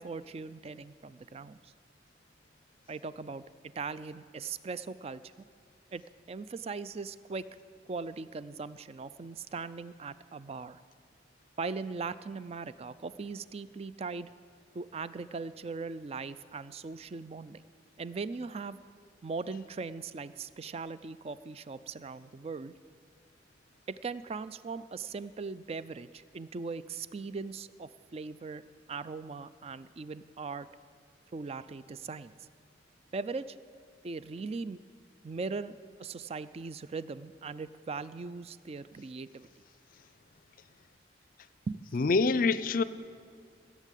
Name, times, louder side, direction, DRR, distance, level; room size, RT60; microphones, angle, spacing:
voice 1, 0.0-1.7 2.9-3.4 3.8-5.5 5.9-6.0 6.3-7.5 7.9-10.8 11.6-14.3 14.7-17.6 18.0-18.8 19.2-22.7 23.9-28.6 28.9-30.7 31.3-32.3 33.1-33.6 34.0-34.8 35.2-39.5 41.7-41.9, right 4 dB, 35° right, 0.3 m, -39 dB
voice 2, 41.9-42.8, left 4 dB, 50° left, 0.4 m, -25 dB
15.5 x 7.4 x 9.1 m
head